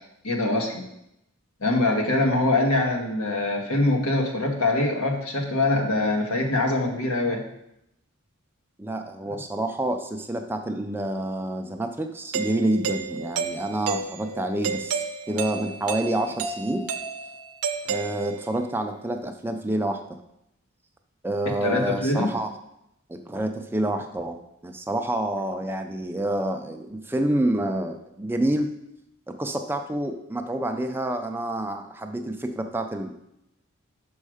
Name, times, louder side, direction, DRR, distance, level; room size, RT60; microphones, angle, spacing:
voice 1, 0.2-0.9 1.6-7.5 21.6-22.3, left 2 dB, 80° left, 2 dB, 1.4 m, -23 dB
voice 2, 8.8-16.9 17.9-20.0 21.2-22.5 23.1-28.8 29.3-33.1, right 1 dB, 10° right, 5 dB, 0.4 m, -28 dB
Doorbell, 12.3-18.7, right 5 dB, 90° right, 0.6 m, -32 dB
6.3 x 5.4 x 4.9 m, 0.81 s
head